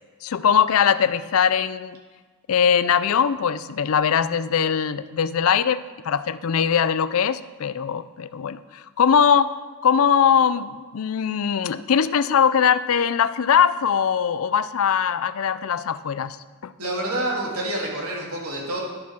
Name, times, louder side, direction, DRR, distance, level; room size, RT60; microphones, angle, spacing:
voice 1, 0.2-2.0 2.5-9.5 9.8-16.4 16.6-16.7, left 7 dB, 65° left, 15 dB, 0.4 m, -21 dB
voice 2, 16.8-18.8, right 1 dB, 85° right, -3 dB, 2.8 m, -27 dB
11.5 x 7.2 x 6.1 m, 1.4 s
head